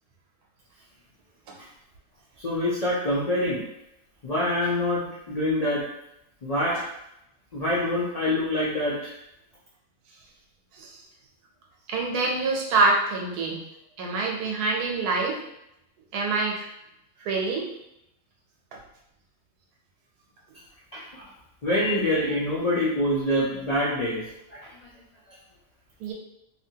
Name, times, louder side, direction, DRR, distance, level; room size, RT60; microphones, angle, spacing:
voice 1, 2.4-3.6 4.2-5.8 6.4-6.8 7.5-9.1 20.9-21.3 21.6-24.2 24.5-24.7, left 1 dB, 75° left, -7 dB, 0.3 m, -25 dB
voice 2, 11.9-13.6 14.0-15.4 16.1-16.7 17.2-17.7 26.0-26.1, right 3 dB, 80° right, -1 dB, 1.2 m, -25 dB
2.8 x 2.6 x 2.7 m, 0.81 s
omnidirectional pair, 1.6 m